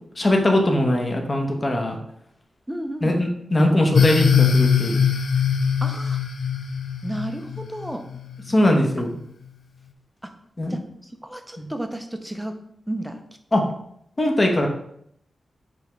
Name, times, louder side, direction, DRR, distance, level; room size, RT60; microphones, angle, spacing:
voice 1, 0.2-2.0 3.0-5.0 8.5-9.1 10.6-10.8 11.6-11.7 13.5-13.6 14.2-14.7, left 1 dB, 25° left, 2 dB, 1.1 m, -20 dB
voice 2, 2.7-3.1 5.8-6.2 7.0-8.1 10.2-10.3 10.7-12.6 12.9-13.2 13.5-13.6, right 1 dB, 5° right, 6 dB, 0.6 m, -32 dB
sound 1, 3.9-8.5, left 7 dB, 70° left, 0.5 m, -21 dB
8.8 x 3.4 x 3.2 m, 0.71 s
wide cardioid pair, 125°, 0 cm